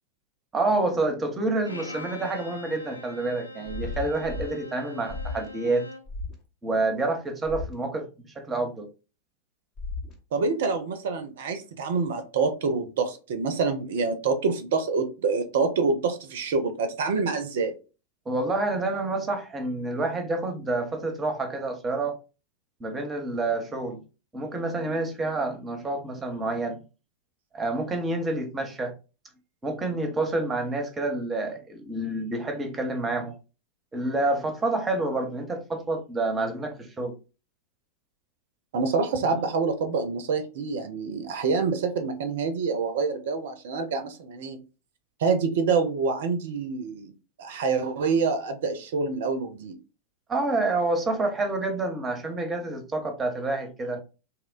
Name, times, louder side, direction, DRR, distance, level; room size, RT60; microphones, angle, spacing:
voice 1, 0.5-5.9 6.6-8.9 18.3-22.2 22.8-24.0 24.3-26.8 27.5-28.9 29.6-33.4 33.9-37.1 50.3-54.0, right 2 dB, 15° right, 0.6 m, -28 dB
Bowed string instrument, 1.6-6.1, left 1 dB, 85° left, 0.4 m, -42 dB
sound 1, 3.7-4.5 5.1-5.5 6.1-6.3 7.4-7.7 9.8-10.1, left 3 dB, 35° left, 0.6 m, -34 dB
voice 2, 10.3-17.7 38.7-44.6 45.2-47.1 47.4-49.7, right 4 dB, 55° right, 0.4 m, -26 dB
2.9 x 2.1 x 2.4 m
figure-of-eight pair, 90°, 0 cm